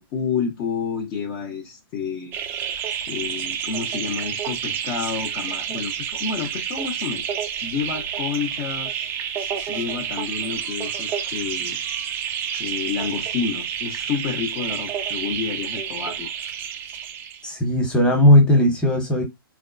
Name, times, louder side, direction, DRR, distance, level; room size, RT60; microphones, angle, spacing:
voice 1, 0.0-2.3 3.1-9.1 9.7-11.8 12.6-16.3, left 6 dB, 30° left, 0.8 m, -29 dB
sound 1, 2.3-17.4, right 8 dB, 15° right, 0.4 m, -29 dB
voice 2, 17.4-19.2, left 1 dB, 5° left, 1.1 m, -17 dB
4.3 x 2.2 x 2.5 m
figure-of-eight pair, 120°, 12 cm